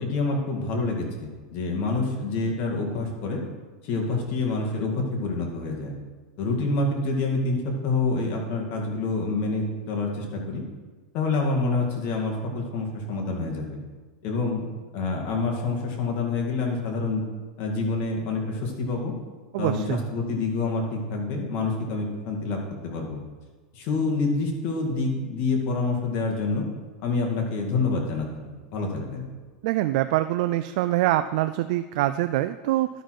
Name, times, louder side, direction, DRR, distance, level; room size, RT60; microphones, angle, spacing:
voice 1, 0.0-3.4 3.8-5.9 6.4-10.6 11.1-13.8 14.2-14.7 14.9-17.2 17.6-19.1 19.6-23.2 23.7-26.6 27.0-28.3 28.7-29.3, left 3 dB, 50° left, 0 dB, 2.2 m, -27 dB
voice 2, 19.5-20.0 29.6-32.9, right 15 dB, 65° right, 11 dB, 0.3 m, -24 dB
11.5 x 6.0 x 4.8 m, 1.4 s
supercardioid pair, 135°, 4 cm